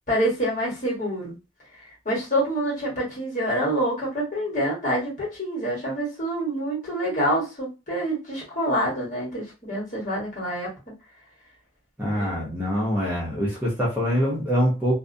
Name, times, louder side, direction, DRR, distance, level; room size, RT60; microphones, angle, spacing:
voice 1, 0.1-1.3 2.0-10.7 12.2-12.5, right 1 dB, 45° left, -5 dB, 1.3 m, -26 dB
voice 2, 12.0-14.9, equal, 10° right, -6 dB, 0.7 m, -24 dB
2.4 x 2.0 x 2.6 m, 0.27 s
head